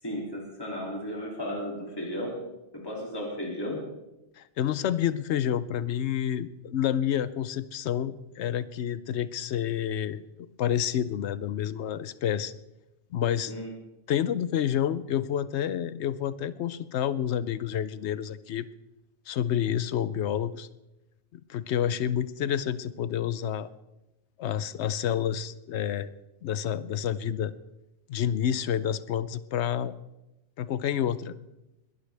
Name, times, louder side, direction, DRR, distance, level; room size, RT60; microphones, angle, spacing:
voice 1, 0.0-2.4 2.7-3.8 13.5-13.7, equal, 20° left, -2 dB, 2.7 m, -34 dB
voice 2, 4.4-10.2 10.6-12.5 13.1-13.5 14.1-18.7 19.3-20.7 21.5-23.7 24.4-26.1 26.4-27.5 28.1-29.9 30.6-31.3, left 9 dB, 75° left, 16 dB, 0.9 m, -29 dB
21.0 x 12.5 x 3.4 m, 0.95 s
omnidirectional pair, 1.2 m